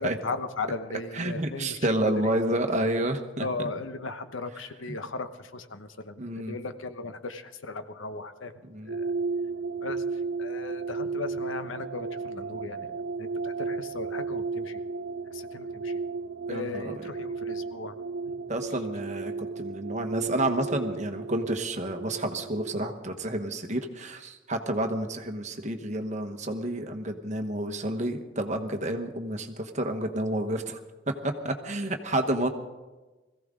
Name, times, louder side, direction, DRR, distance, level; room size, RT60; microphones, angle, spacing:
voice 1, 0.0-1.8 2.2-2.3 3.4-8.5 8.8-9.1 9.8-14.8 15.3-16.0 16.5-18.0 18.2-18.4, left 3 dB, 80° left, 9 dB, 1.0 m, -37 dB
voice 2, 1.1-3.5 6.2-6.6 8.6-8.9 16.5-16.9 18.5-30.8 31.1-32.5, right 1 dB, 35° right, 6 dB, 1.2 m, -30 dB
sound 1, 8.9-22.8, right 4 dB, 75° right, 0.6 m, -34 dB
21.5 x 15.5 x 3.8 m, 1.2 s
head